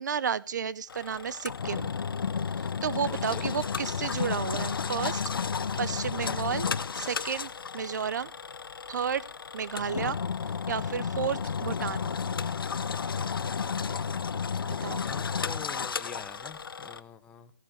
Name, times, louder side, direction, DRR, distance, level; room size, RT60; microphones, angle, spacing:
voice 1, 0.0-1.9 2.6-5.2 5.8-6.7 6.9-8.3 8.9-9.2 9.5-10.2 10.7-12.1 14.7-15.0, right 7 dB, 50° right, 18 dB, 0.6 m, -32 dB
Engine, 0.9-17.0, left 6 dB, 70° left, 0.7 m, -32 dB
voice 2, 3.1-3.5 14.6-17.5, left 7 dB, 10° left, 11 dB, 0.6 m, -45 dB
14.5 x 7.6 x 6.4 m, 0.38 s
hypercardioid pair, 155°, 12 cm